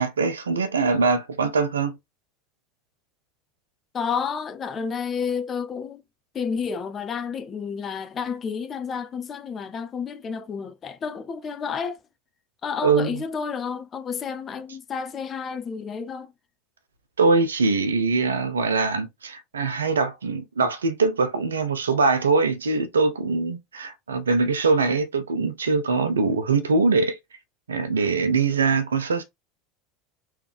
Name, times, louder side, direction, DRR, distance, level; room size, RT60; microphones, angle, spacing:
voice 1, 0.0-1.9 12.8-13.2 17.2-27.2 27.7-29.2, right 4 dB, 80° right, 0.6 m, -22 dB
voice 2, 3.9-6.1 6.3-12.0 12.6-16.3, left 6 dB, 35° left, 0.6 m, -30 dB
3.3 x 3.2 x 3.4 m
figure-of-eight pair, 80°, 0 cm